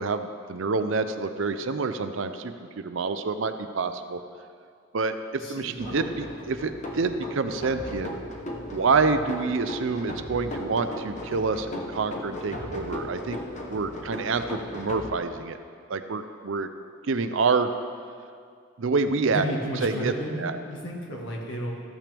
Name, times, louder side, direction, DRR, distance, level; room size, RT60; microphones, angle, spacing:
voice 1, 0.0-4.2 4.9-8.1 8.7-13.4 13.7-15.6 15.9-16.7 17.1-17.7 18.8-19.4 19.8-20.1 20.4-20.5, right 4 dB, 65° right, 9 dB, 0.5 m, -27 dB
voice 2, 5.4-6.0 19.3-21.7, equal, 60° left, -1 dB, 1.7 m, -33 dB
sound 1, 5.8-15.1, left 1 dB, 35° left, 0.9 m, -37 dB
14.5 x 9.0 x 3.4 m, 2.2 s
head